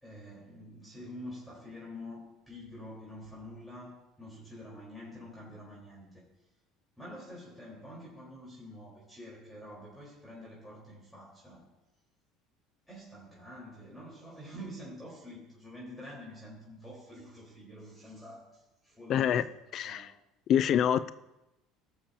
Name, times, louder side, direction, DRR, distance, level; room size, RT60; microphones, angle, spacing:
voice 1, 0.0-6.3 7.0-11.6 12.9-19.4 19.8-20.1, left 1 dB, 5° left, -6 dB, 4.2 m, -47 dB
voice 2, 19.1-19.4 19.7-20.1 20.5-21.1, left 9 dB, 55° left, 14 dB, 0.4 m, -26 dB
19.5 x 7.0 x 2.8 m, 0.95 s
supercardioid pair, 95°, 0 cm